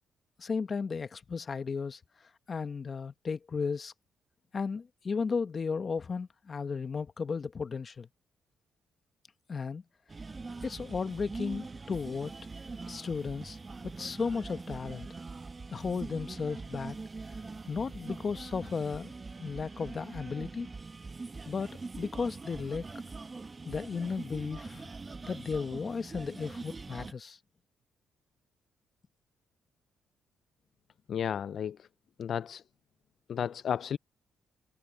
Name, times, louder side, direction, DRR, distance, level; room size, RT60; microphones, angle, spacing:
voice 1, 0.4-2.0 2.5-3.9 4.5-8.1 9.5-9.8 10.6-12.3 12.9-13.6 14.0-15.1 15.7-17.0 17.7-19.1 19.4-20.7 21.5-22.9 23.6-24.9 25.2-27.4, left 5 dB, 40° left, 1.1 m, -34 dB
sound 1, 10.1-27.1, right 3 dB, 30° right, 1.0 m, -43 dB
voice 2, 31.1-31.8 32.2-32.6 33.3-34.0, left 8 dB, 60° left, 0.3 m, -32 dB
cardioid pair, 90°, 0 cm